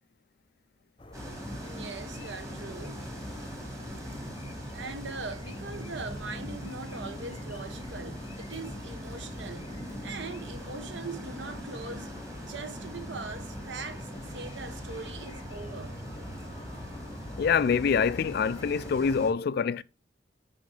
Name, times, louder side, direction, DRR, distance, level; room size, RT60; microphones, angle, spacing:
sound 1, 1.0-19.3, left 2 dB, 25° left, 0.7 m, -48 dB
sound 2, 1.1-19.3, equal, 15° right, 1.7 m, -41 dB
voice 1, 1.6-3.1 4.3-9.7 10.0-12.1 12.4-16.0, right 3 dB, 70° right, 1.0 m, -41 dB
voice 2, 17.4-19.8, left 6 dB, 55° left, 0.3 m, -25 dB
9.5 x 3.7 x 3.3 m
head